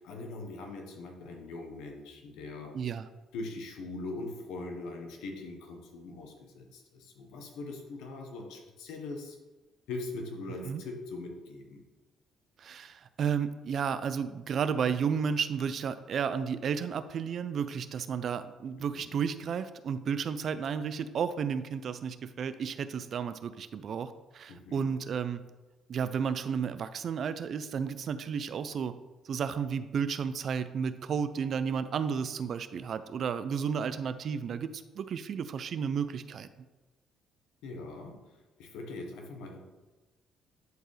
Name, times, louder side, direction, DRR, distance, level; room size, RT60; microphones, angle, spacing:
voice 1, 0.0-2.8 3.3-9.4 9.9-11.8 18.9-19.2 24.5-24.9 37.6-39.6, left 2 dB, 85° left, 3 dB, 1.2 m, -41 dB
voice 2, 2.7-3.1 10.6-10.8 12.6-25.4 25.9-28.9 29.2-36.5, right 7 dB, 55° right, 12 dB, 0.4 m, -32 dB
11.0 x 4.5 x 3.3 m, 1.2 s
cardioid pair, 90°, 0 cm